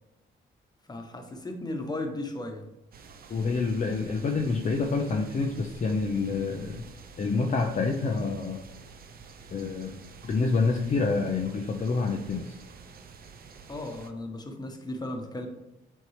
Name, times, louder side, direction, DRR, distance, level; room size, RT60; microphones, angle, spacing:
voice 1, 0.9-2.6 13.7-15.5, left 2 dB, 20° left, 4 dB, 1.1 m, -35 dB
sound 1, 2.9-14.1, right 5 dB, 50° right, 0.6 m, -48 dB
voice 2, 3.3-6.9 7.2-8.7 9.5-10.0 10.2-12.5, left 4 dB, 40° left, 1 dB, 0.6 m, -27 dB
7.7 x 4.5 x 3.2 m, 0.93 s
cardioid pair, 90°, 20 cm